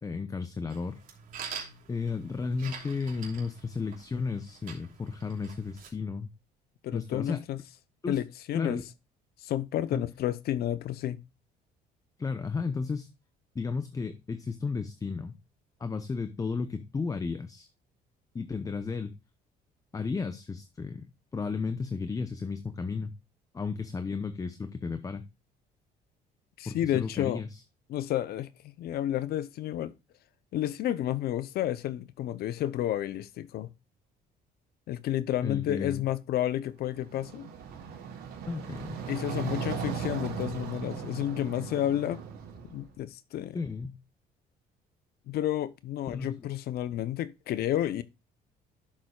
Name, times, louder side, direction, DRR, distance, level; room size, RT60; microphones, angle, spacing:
voice 1, 0.0-1.0 1.9-6.3 6.9-7.4 8.0-8.2 8.5-8.9 9.9-10.1 12.2-13.1 13.5-15.4 15.8-17.7 18.3-19.1 19.9-21.1 21.3-23.1 23.5-25.2 26.7-27.6 35.4-36.0 38.5-39.0 39.4-39.8 43.5-44.0 46.1-46.5, left 4 dB, 20° left, 0.7 m, -33 dB
sound 1, 0.7-5.9, right 6 dB, 55° right, 3.0 m, -45 dB
voice 2, 6.8-7.8 8.1-8.8 9.4-11.2 26.6-27.4 27.9-29.9 30.5-33.7 34.9-37.5 39.1-42.2 42.7-43.6 45.3-48.0, left 12 dB, 65° left, 0.7 m, -31 dB
sound 2, 36.9-42.9, right 7 dB, 75° right, 3.3 m, -38 dB
11.0 x 7.4 x 2.3 m
cardioid pair, 110°, 17 cm